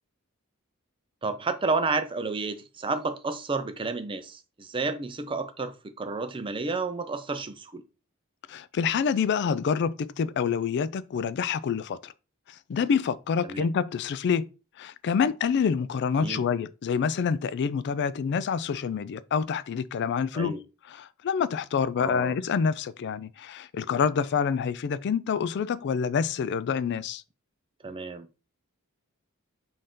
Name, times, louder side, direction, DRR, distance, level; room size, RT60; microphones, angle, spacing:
voice 1, 1.2-7.8 13.5-13.7 16.2-16.4 20.3-20.6 22.0-22.3 27.8-28.3, right 3 dB, 25° right, 0.5 m, -31 dB
voice 2, 8.5-12.1 12.7-14.5 14.8-20.6 20.9-27.2, left 6 dB, 55° left, 0.3 m, -27 dB
5.4 x 2.6 x 3.6 m
head